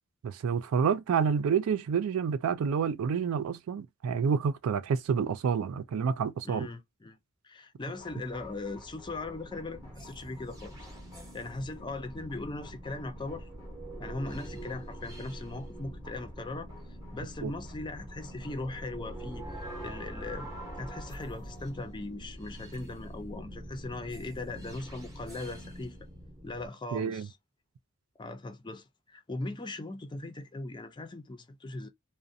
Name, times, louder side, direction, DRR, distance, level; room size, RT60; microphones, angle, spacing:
voice 1, 0.2-6.7 17.4-17.5 26.9-27.3, right 6 dB, 80° right, 0.4 m, -28 dB
voice 2, 6.4-7.2 7.4-10.7 11.3-13.5 14.0-16.7 17.1-19.4 19.8-20.5 20.8-26.0 26.4-27.3 28.2-31.9, left 2 dB, 20° left, 0.4 m, -39 dB
sound 1, 7.8-26.7, right 1 dB, 15° right, 0.7 m, -44 dB
2.5 x 2.1 x 2.6 m
head